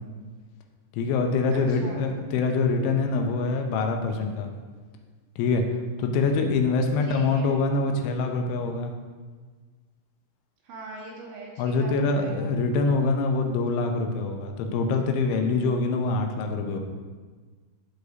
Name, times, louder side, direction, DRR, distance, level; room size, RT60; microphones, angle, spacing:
voice 1, 1.0-4.5 5.4-5.6 6.0-8.9 11.6-16.8, left 3 dB, 90° left, 4 dB, 3.0 m, -25 dB
voice 2, 1.5-2.1 7.1-7.5 10.6-12.6, right 2 dB, 75° right, -4 dB, 3.1 m, -41 dB
12.0 x 4.9 x 2.6 m, 1.4 s
omnidirectional pair, 5.3 m